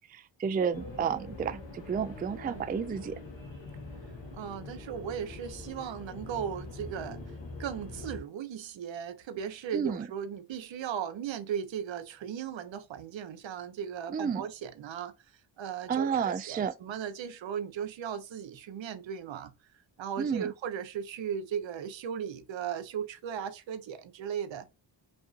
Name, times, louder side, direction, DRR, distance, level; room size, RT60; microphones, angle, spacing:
voice 1, 0.1-3.2 9.7-10.1 14.1-14.5 15.9-16.7 20.2-20.5, right 7 dB, 20° right, 0.3 m, -31 dB
sound 1, 0.7-8.2, left 2 dB, 70° left, 1.6 m, -44 dB
voice 2, 4.3-7.2 7.6-15.1 15.6-19.5 20.0-24.7, right 8 dB, 80° right, 0.8 m, -37 dB
5.2 x 2.6 x 2.5 m
cardioid pair, 75°, 45 cm